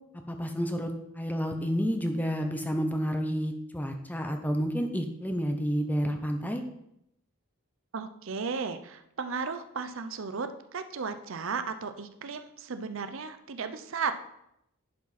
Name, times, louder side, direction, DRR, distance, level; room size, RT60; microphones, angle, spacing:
voice 1, 0.3-6.6, equal, 5° left, 5 dB, 0.6 m, -30 dB
voice 2, 7.9-14.1, right 5 dB, 60° right, 9 dB, 0.6 m, -35 dB
11.0 x 5.0 x 4.1 m, 0.80 s
head